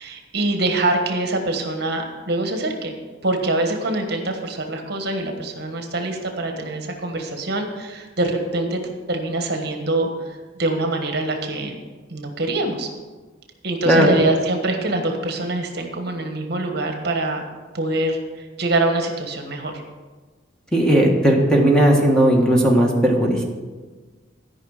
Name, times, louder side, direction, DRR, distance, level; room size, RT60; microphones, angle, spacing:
voice 1, 0.0-2.9 3.2-8.8 9.1-11.7 12.1-12.9 13.6-17.4 17.7-19.8, right 2 dB, 55° right, 4 dB, 1.3 m, -24 dB
voice 2, 20.7-23.4, right 1 dB, 5° left, -1 dB, 1.4 m, -16 dB
13.0 x 5.5 x 6.5 m, 1.3 s
head